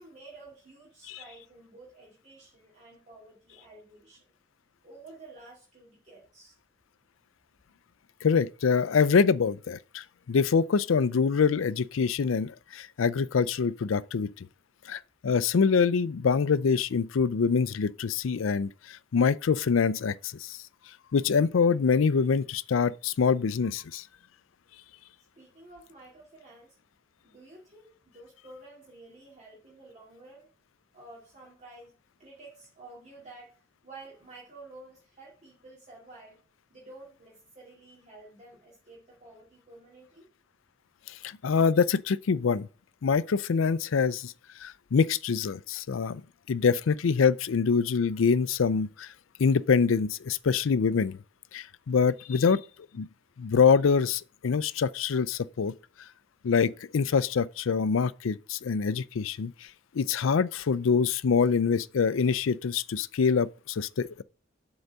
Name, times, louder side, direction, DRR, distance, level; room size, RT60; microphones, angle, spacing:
voice 1, 0.0-4.2 4.8-6.6 25.4-26.8 27.2-30.5 30.9-31.9 32.2-36.4 36.7-40.3, right 2 dB, 35° right, 2.3 m, -51 dB
voice 2, 8.2-14.5 14.9-20.6 21.1-24.0 41.2-42.7 43.0-44.3 44.6-46.2 46.5-49.1 49.4-51.2 51.5-52.6 52.9-53.1 53.4-55.7 56.4-59.5 59.9-64.2, left 5 dB, 70° left, 0.4 m, -25 dB
8.0 x 3.9 x 5.4 m
head